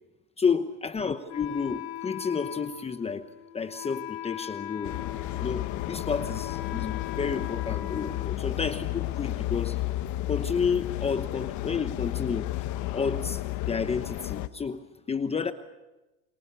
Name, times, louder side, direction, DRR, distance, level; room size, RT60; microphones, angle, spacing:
voice 1, 0.4-3.3 3.5-5.0 5.4-9.8 10.3-12.5 12.9-14.8 15.1-15.5, left 5 dB, 15° left, 10 dB, 1.0 m, -30 dB
Wind instrument woodwind instrument, 1.3-9.0, left 13 dB, 70° left, 2.5 m, -40 dB
sound 1, 4.8-14.5, left 16 dB, 50° left, 1.3 m, -32 dB
30.0 x 24.0 x 6.9 m, 1.1 s
supercardioid pair, 125°, 37 cm